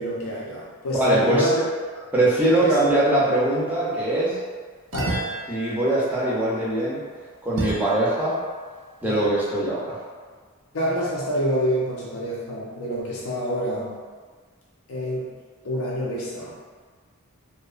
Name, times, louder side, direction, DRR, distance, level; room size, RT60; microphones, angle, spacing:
voice 1, 0.0-1.6 2.6-2.7 4.9-5.2 9.0-9.2 10.7-13.9 14.9-15.3 15.6-16.5, equal, 70° left, -6 dB, 0.5 m, -27 dB
voice 2, 0.9-1.5 2.1-4.4 5.5-7.0 7.4-8.4 9.0-10.0, right 1 dB, 10° right, -8 dB, 0.5 m, -22 dB
sound 1, 2.7-3.5 4.9-8.5, right 2 dB, 80° right, 0.4 m, -34 dB
2.7 x 2.0 x 2.4 m, 1.5 s
head